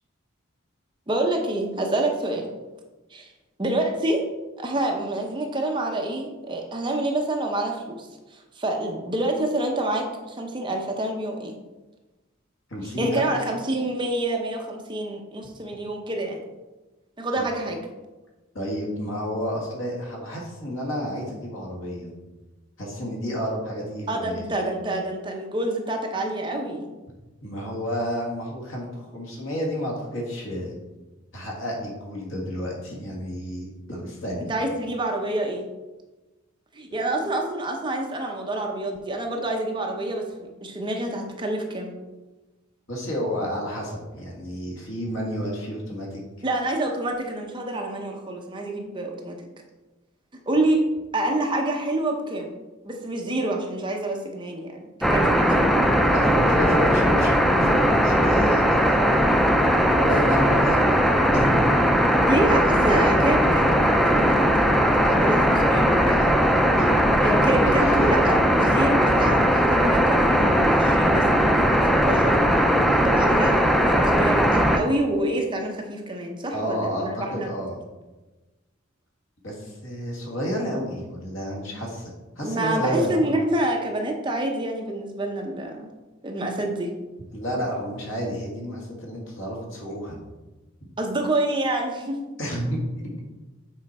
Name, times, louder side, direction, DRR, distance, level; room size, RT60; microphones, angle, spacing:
voice 1, 1.1-2.5 3.1-3.3 3.6-4.3 4.6-11.6 12.8-16.4 17.2-17.8 24.1-26.9 34.5-35.7 36.7-41.9 46.4-49.4 50.5-50.8 51.1-52.6 52.8-55.8 62.2-66.3 67.2-77.5 82.4-85.9 86.2-86.9 91.0-92.2, right 1 dB, 25° right, 2 dB, 0.7 m, -27 dB
voice 2, 12.7-13.3 17.4-17.5 18.5-22.1 22.8-24.5 27.4-30.7 31.3-34.5 36.9-37.0 42.9-46.2 56.1-59.0 59.8-60.8 61.3-61.6 66.6-67.1 67.8-68.1 76.5-77.8 79.4-82.1 82.4-83.1 87.3-90.2 90.8-90.9 92.4-92.8, equal, 70° left, -1 dB, 1.9 m, -30 dB
sound 1, 55.0-74.8, equal, ahead, 0.4 m, -19 dB
7.5 x 4.4 x 4.2 m, 1.2 s
head